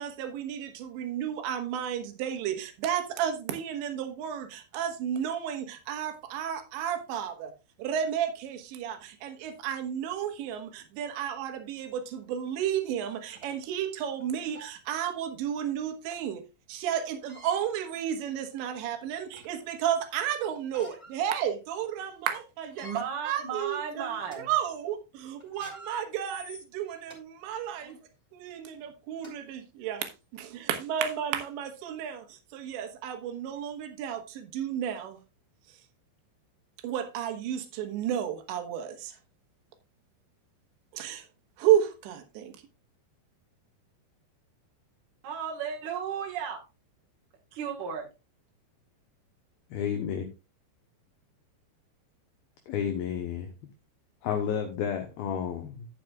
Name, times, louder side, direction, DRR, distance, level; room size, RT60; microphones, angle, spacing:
voice 1, 0.0-7.5 7.8-16.4 16.7-22.9 23.2-28.0 28.3-35.2 36.8-39.2 40.9-41.3 41.6-42.5, right 9 dB, 75° right, 3.4 m, -32 dB
sound 1, 12.4-12.5 13.1-13.6 14.1-14.2 14.5-14.8 16.1-16.2 17.1-17.6 18.3-18.4 18.9-19.6 20.5-21.2 21.6-21.7 22.1-22.3 22.7-23.0 23.6-23.8 24.2-24.4 25.4-27.2 27.8-28.0 28.8-28.9 29.2-29.3 30.0-30.1, left 2 dB, 5° left, 3.6 m, -49 dB
voice 2, 22.8-24.5 45.2-46.6 47.5-48.1, right 7 dB, 60° right, 2.3 m, -34 dB
voice 3, 49.7-50.2 52.7-53.5 54.2-55.9, left 8 dB, 75° left, 2.3 m, -31 dB
11.5 x 9.4 x 2.4 m
omnidirectional pair, 5.5 m